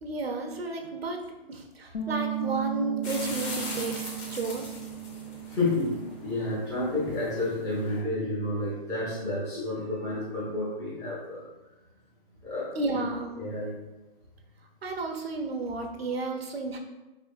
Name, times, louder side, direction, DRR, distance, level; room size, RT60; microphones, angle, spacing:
voice 1, 0.0-1.2 1.5-4.7 12.7-13.3 14.8-16.8, right 3 dB, 90° right, 3 dB, 0.7 m, -32 dB
Bass guitar, 1.9-8.2, right 9 dB, 85° left, 0.7 m, -37 dB
sound 1, 3.0-8.0, left 2 dB, 30° left, 0.8 m, -40 dB
voice 2, 5.5-11.4 12.4-13.0 13.4-13.8, left 2 dB, 10° left, -7 dB, 0.5 m, -30 dB
3.4 x 3.1 x 2.6 m, 1.1 s
hypercardioid pair, 140°, 30 cm